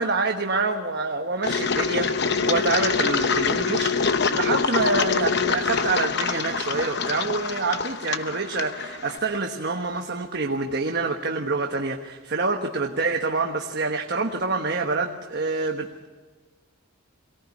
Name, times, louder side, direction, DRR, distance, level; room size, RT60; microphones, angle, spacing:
voice 1, 0.0-3.9 4.3-16.1, right 3 dB, 50° right, 3 dB, 1.3 m, -26 dB
Engine, 1.4-9.2, left 5 dB, 50° left, 0.9 m, -25 dB
23.0 x 18.0 x 9.7 m, 1.4 s
head